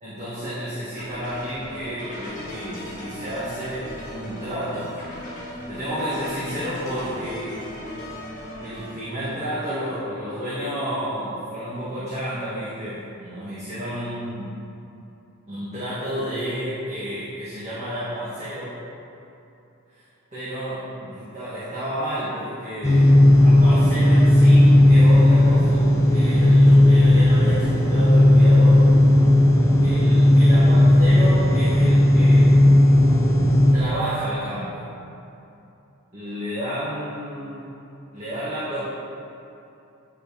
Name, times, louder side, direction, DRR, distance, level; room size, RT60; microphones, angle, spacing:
voice 1, 0.0-5.0 5.7-7.7 8.6-14.5 15.5-18.8 19.9-20.0 20.3-23.1 23.4-28.9 29.8-32.6 33.7-34.9 36.1-37.8 38.1-38.9, equal, 30° right, -11 dB, 1.5 m, -31 dB
sound 1, 1.0-9.0, equal, 35° left, 1.6 m, -38 dB
sound 2, 22.8-33.7, left 1 dB, 15° left, 0.6 m, -15 dB
9.1 x 5.0 x 3.5 m, 2.8 s
head